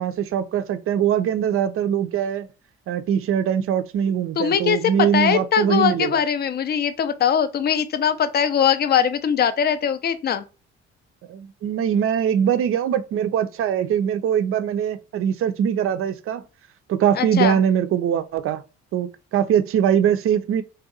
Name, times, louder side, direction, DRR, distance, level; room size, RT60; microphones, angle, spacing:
voice 1, 0.0-2.5 2.9-6.2 11.3-16.4 16.9-18.6 18.9-20.6, right 9 dB, 40° right, 0.4 m, -22 dB
voice 2, 4.4-10.4 17.1-17.6, left 8 dB, 30° left, 0.4 m, -21 dB
2.6 x 2.2 x 2.5 m
hypercardioid pair, 45°, 33 cm